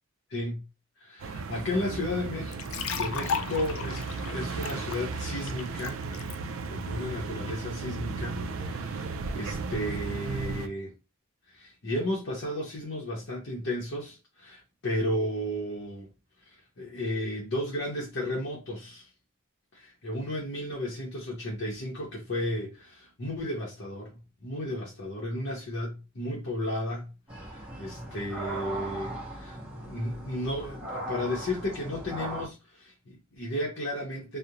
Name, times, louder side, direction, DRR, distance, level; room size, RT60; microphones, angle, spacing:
voice 1, 0.3-0.6 1.0-2.6 2.9-6.0 6.6-10.9 11.5-16.1 16.8-19.1 19.7-34.4, left 1 dB, 60° left, 0.7 m, -34 dB
sound 1, 1.2-10.7, right 4 dB, 70° right, 0.3 m, -35 dB
sound 2, 2.5-6.4, left 6 dB, 75° left, 0.3 m, -35 dB
sound 3, 27.3-32.5, right 1 dB, 5° right, 0.7 m, -38 dB
2.4 x 2.0 x 2.8 m
head